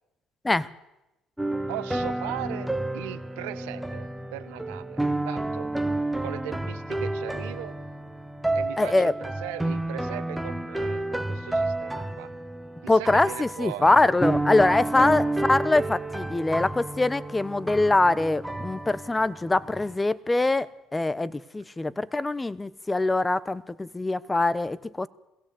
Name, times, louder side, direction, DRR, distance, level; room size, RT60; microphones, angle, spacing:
sound 1, 1.4-19.9, right 2 dB, 5° right, 1.3 m, -30 dB
voice 1, 1.7-5.7 6.2-7.7 8.5-12.3 12.8-14.0 15.0-15.2, right 16 dB, 85° right, 11 dB, 1.0 m, -39 dB
voice 2, 8.8-9.1 12.9-25.1, left 2 dB, 15° left, 18 dB, 1.0 m, -23 dB
21.5 x 16.0 x 8.2 m, 0.94 s
supercardioid pair, 70°, 0 cm